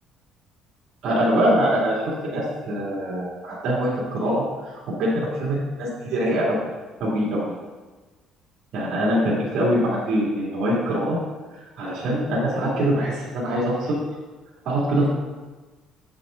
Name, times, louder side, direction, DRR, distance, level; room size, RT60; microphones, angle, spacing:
voice 1, 1.0-1.9 2.2-6.6 7.0-7.4 8.7-11.2 11.8-14.0 14.6-15.1, equal, 60° right, -7 dB, 2.8 m, -23 dB
7.7 x 7.3 x 3.9 m, 1.2 s
cardioid pair, 135°, 0 cm